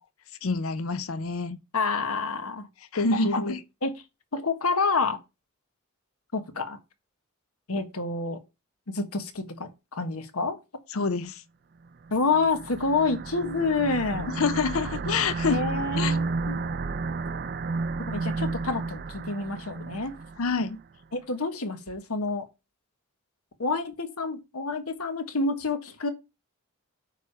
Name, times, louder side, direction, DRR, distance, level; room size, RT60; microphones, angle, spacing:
voice 1, 0.4-1.6 2.9-3.6 10.9-11.4 14.4-15.6 16.0-16.2 20.4-20.8, left 4 dB, 70° left, 0.6 m, -27 dB
voice 2, 1.7-2.7 2.9-3.6 3.8-3.9 4.3-5.2 6.3-6.8 7.7-8.4 8.9-10.6 12.1-14.3 15.5-16.6 18.1-20.1 21.1-22.5 23.6-26.1, left 3 dB, 85° left, 1.4 m, -28 dB
sound 1, 12.1-20.7, right 3 dB, 45° right, 0.4 m, -32 dB
9.2 x 3.5 x 6.7 m
head